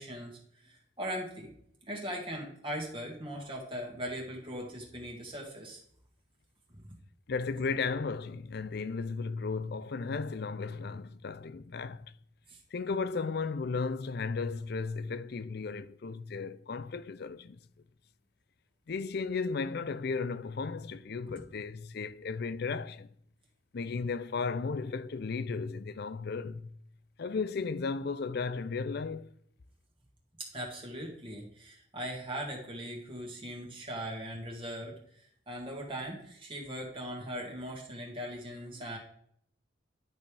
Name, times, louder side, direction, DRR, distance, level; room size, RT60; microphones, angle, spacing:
voice 1, 0.0-1.5 1.8-5.8 6.8-6.9 12.5-12.6 30.4-39.0, equal, 25° right, 1.9 m, -40 dB
voice 2, 7.3-12.0 12.7-17.6 18.9-23.1 23.7-26.6 27.2-29.3, left 4 dB, 55° left, 0.4 m, -35 dB
10.5 x 5.5 x 3.4 m
head